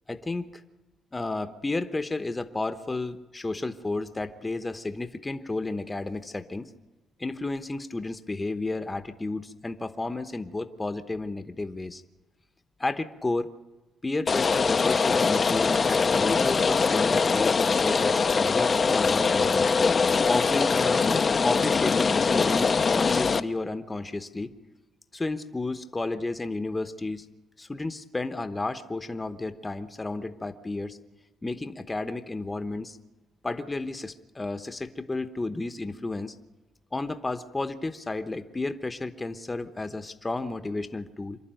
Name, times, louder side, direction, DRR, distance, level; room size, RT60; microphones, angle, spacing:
voice 1, 0.1-0.5 1.1-6.7 7.2-12.0 12.8-13.5 14.0-19.7 20.3-21.1 21.4-24.5 25.1-27.3 27.6-31.0 31.4-33.0 33.4-36.4 36.9-41.4, left 2 dB, 20° left, 9 dB, 1.0 m, -32 dB
Rain, 14.3-23.4, left 5 dB, 40° left, 0.7 m, -23 dB
25.5 x 11.0 x 9.1 m, 1.1 s
cardioid pair, 90°, 0 cm